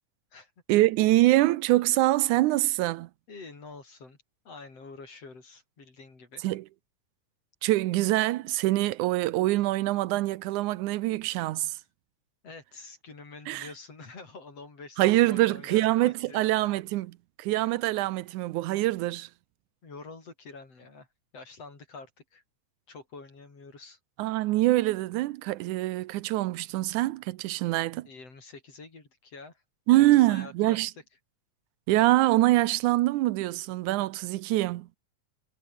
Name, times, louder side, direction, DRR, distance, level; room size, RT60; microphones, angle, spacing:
voice 1, 0.7-3.1 6.4-6.7 7.6-11.8 13.5-13.7 15.0-19.3 24.2-28.1 29.9-30.9 31.9-35.0, right 17 dB, 85° right, 2.2 m, -24 dB
voice 2, 3.3-4.2 4.4-6.4 12.4-16.4 19.8-21.1 21.3-22.4 22.9-24.0 28.0-29.6 30.0-30.9, left 3 dB, 55° left, 6.5 m, -46 dB
omnidirectional pair, 3.4 m